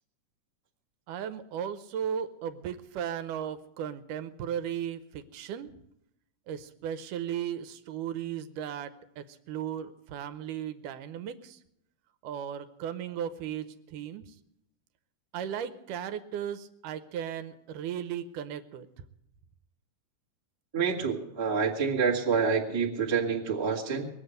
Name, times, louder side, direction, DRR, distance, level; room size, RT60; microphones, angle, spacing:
voice 1, 1.1-5.7 6.5-11.6 12.2-14.3 15.3-18.9, right 9 dB, 80° right, 11 dB, 2.3 m, -36 dB
voice 2, 20.7-24.1, right 5 dB, 15° right, -2 dB, 0.9 m, -27 dB
20.5 x 7.8 x 7.8 m, 0.80 s
omnidirectional pair, 3.7 m